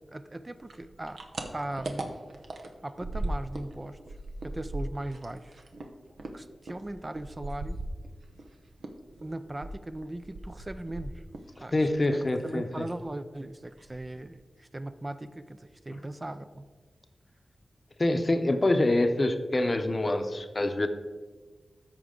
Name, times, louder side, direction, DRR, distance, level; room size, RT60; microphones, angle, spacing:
voice 1, 0.1-1.2 1.5-2.2 2.8-4.0 4.4-5.6 6.3-7.8 9.2-11.2 11.6-16.6, right 1 dB, 25° right, 10 dB, 0.4 m, -39 dB
sound 1, 0.6-3.7 4.0-8.5 8.8-11.6 11.8-12.5 12.8-13.1 13.4-13.5 13.8-14.3, right 2 dB, 80° right, 0.8 m, -38 dB
voice 2, 11.7-12.9 18.0-20.9, left 2 dB, 40° left, 8 dB, 0.7 m, -26 dB
13.0 x 4.6 x 3.7 m, 1.4 s
cardioid pair, 60°, 0 cm